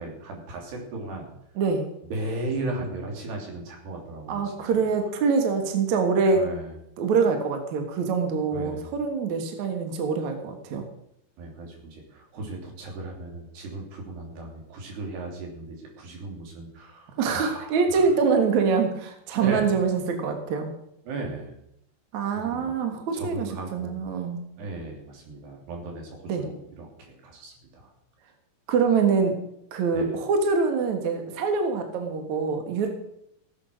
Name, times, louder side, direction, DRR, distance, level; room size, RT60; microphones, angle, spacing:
voice 1, 0.0-1.3 2.1-4.8 6.3-6.8 8.5-9.0 11.4-18.1 19.3-19.7 21.1-21.5 22.4-24.1 24.6-27.9 29.9-30.2, right 2 dB, 75° right, 1 dB, 5.2 m, -36 dB
voice 2, 1.6-1.9 4.3-6.5 7.0-10.9 17.2-20.7 22.1-24.4 26.3-26.5 28.7-29.4 29.7-32.9, right 5 dB, 55° right, 5 dB, 2.4 m, -24 dB
16.5 x 8.6 x 6.4 m, 0.77 s
omnidirectional pair, 4.8 m